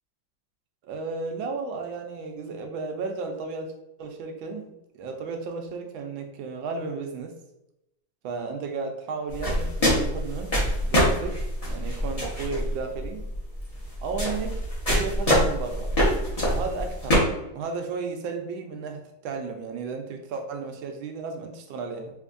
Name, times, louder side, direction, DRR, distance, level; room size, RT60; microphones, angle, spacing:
voice 1, 0.8-3.7 4.0-4.7 4.9-7.3 8.2-10.5 10.8-11.4 11.7-13.2 14.0-15.9 16.5-17.2 17.5-22.1, right 4 dB, 85° right, 4 dB, 1.4 m, -34 dB
sound 1, 9.3-17.1, equal, 25° left, 0.8 m, -25 dB
4.3 x 2.6 x 2.5 m, 0.89 s
omnidirectional pair, 2.1 m